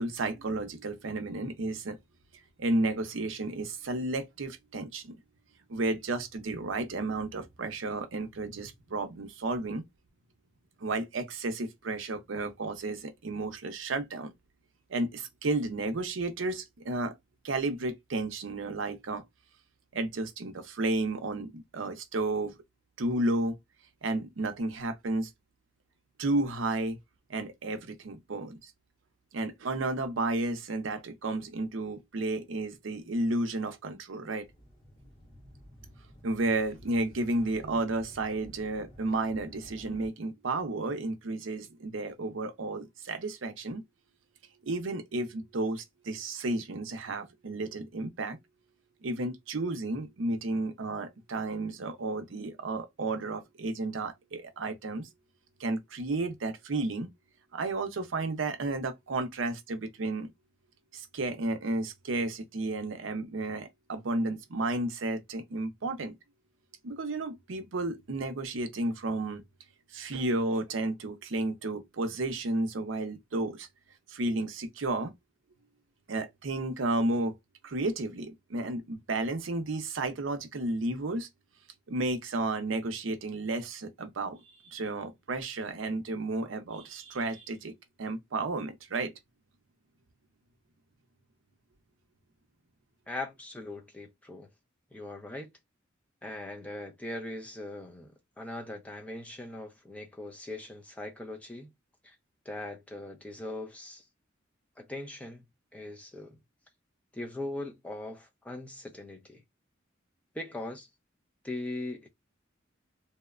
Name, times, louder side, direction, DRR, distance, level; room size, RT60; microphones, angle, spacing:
voice 1, 0.0-2.0 2.6-5.2 5.7-9.8 10.8-14.3 14.9-17.1 17.4-19.2 19.9-22.5 23.0-23.6 24.0-25.3 26.2-27.0 27.3-28.7 29.3-34.5 36.2-43.8 44.6-48.4 49.0-55.1 55.6-57.1 57.5-60.3 60.9-66.2 66.8-69.4 69.9-73.7 74.1-75.1 76.1-77.4 77.6-81.3 81.9-84.4 84.7-87.7 88.0-89.1, right 2 dB, 75° right, 0.6 m, -32 dB
sound 1, 34.4-40.1, equal, 30° left, 1.1 m, -53 dB
voice 2, 93.1-94.5 94.9-95.5 96.2-101.7 102.0-102.2 102.5-104.0 104.8-105.4 105.7-106.4 107.1-109.4 110.3-110.9 111.4-112.1, left 2 dB, 5° left, 0.5 m, -40 dB
2.8 x 2.1 x 2.4 m
head